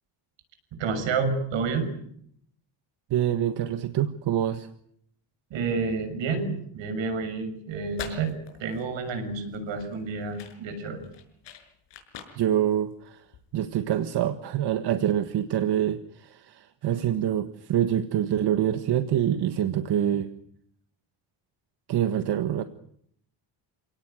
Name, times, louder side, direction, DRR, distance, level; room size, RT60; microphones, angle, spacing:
voice 1, 0.8-1.9 5.5-8.3 8.6-11.0, right 4 dB, 80° right, 8 dB, 6.8 m, -29 dB
voice 2, 3.1-4.7 12.3-13.2 13.5-20.3 21.9-22.6, right 10 dB, 60° right, 9 dB, 1.5 m, -26 dB
sound 1, 7.7-13.7, left 8 dB, 70° left, 6.1 m, -45 dB
29.0 x 18.0 x 9.1 m, 0.69 s
cardioid pair, 175°, 44 cm